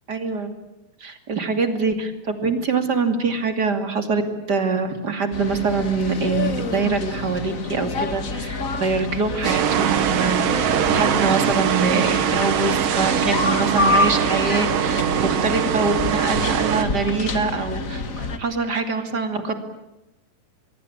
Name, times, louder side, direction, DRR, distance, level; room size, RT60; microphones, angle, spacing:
voice 1, 0.1-0.5 1.0-4.2 4.5-19.6, right 4 dB, 30° right, 7 dB, 2.6 m, -24 dB
sound 1, 5.3-18.4, left 3 dB, 50° left, 0.9 m, -28 dB
sound 2, 9.4-16.9, right 8 dB, 70° right, 3.1 m, -22 dB
24.5 x 23.0 x 8.7 m, 0.96 s
omnidirectional pair, 4.3 m